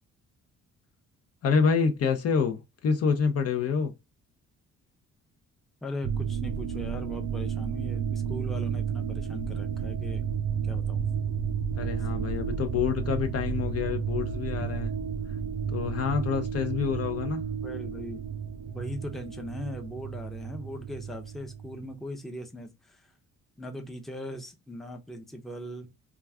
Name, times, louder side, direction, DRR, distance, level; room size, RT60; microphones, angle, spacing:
voice 1, 1.4-3.9 11.8-14.9 15.7-17.4, left 6 dB, 55° left, 0.6 m, -27 dB
voice 2, 5.8-10.2 10.6-11.0 17.6-18.2 18.7-23.0 23.6-25.9, left 1 dB, ahead, 0.6 m, -39 dB
sound 1, 6.0-21.9, right 7 dB, 70° right, 0.6 m, -32 dB
2.3 x 2.3 x 3.4 m
cardioid pair, 90°, 30 cm